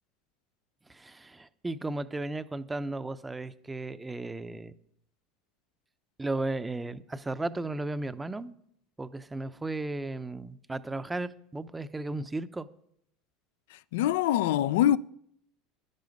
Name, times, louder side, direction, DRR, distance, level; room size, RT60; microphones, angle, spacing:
voice 1, 0.9-4.7 6.2-8.5 9.0-12.7, right 2 dB, 10° right, 0.6 m, -35 dB
voice 2, 13.9-15.0, left 12 dB, 85° left, 0.4 m, -24 dB
10.5 x 10.5 x 5.3 m
supercardioid pair, 125°, 0 cm